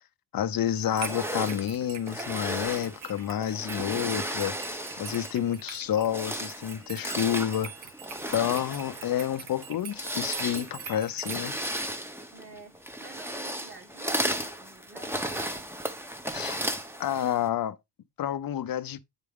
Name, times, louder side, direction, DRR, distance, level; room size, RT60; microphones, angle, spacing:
voice 1, 0.3-4.6 5.0-7.9 8.3-11.6 16.3-16.6 17.0-17.8 18.2-19.0, left 10 dB, 45° left, 0.7 m, -29 dB
sound 1, 0.7-11.8, right 7 dB, 65° right, 1.5 m, -44 dB
sound 2, 0.9-5.5 5.9-17.5, right 1 dB, 5° right, 0.9 m, -35 dB
voice 2, 12.3-15.3, right 3 dB, 25° right, 1.8 m, -50 dB
9.0 x 4.7 x 3.7 m
cardioid pair, 115°, 49 cm